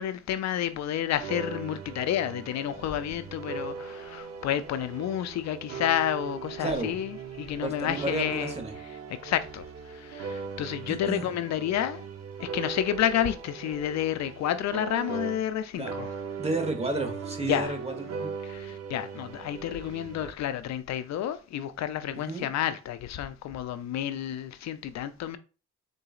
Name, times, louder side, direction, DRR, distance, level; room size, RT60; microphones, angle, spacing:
voice 1, 0.0-8.6 9.1-12.1 12.4-16.1 17.4-17.7 18.4-25.4, left 11 dB, 65° left, 0.4 m, -30 dB
sound 1, 1.2-15.6 15.9-20.3, right 5 dB, 55° right, 0.7 m, -39 dB
voice 2, 6.6-7.0 7.6-8.7 10.9-11.3 15.7-15.9 16.4-18.3 22.1-22.4, right 2 dB, 20° right, 1.1 m, -32 dB
3.9 x 3.8 x 2.4 m
cardioid pair, 90°, 30 cm